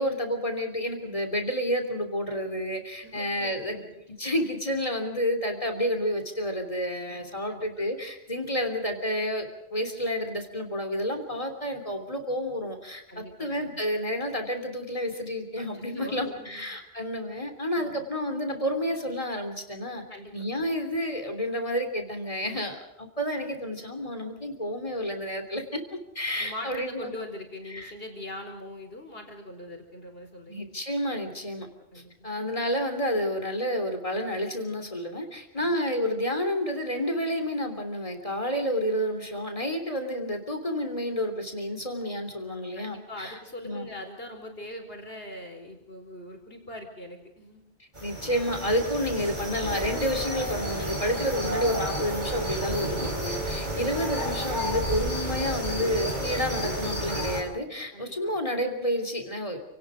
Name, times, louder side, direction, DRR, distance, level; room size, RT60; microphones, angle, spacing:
voice 1, 0.0-3.9 4.2-20.0 20.3-25.8 26.1-27.1 27.7-27.9 30.5-31.7 32.2-43.4 43.6-43.9 48.0-59.6, equal, 30° left, 5 dB, 3.4 m, -30 dB
voice 2, 3.0-4.2 7.1-7.9 13.1-13.8 15.6-15.7 15.9-16.7 17.7-18.0 20.1-20.7 26.4-30.6 31.9-32.3 35.6-35.7 42.7-47.6 53.4-53.9 57.9-58.3, left 1 dB, 60° left, 4 dB, 4.9 m, -42 dB
sound 1, 47.9-57.4, right 1 dB, 45° right, 4.9 m, -31 dB
29.5 x 18.5 x 5.1 m, 0.83 s
omnidirectional pair, 1.1 m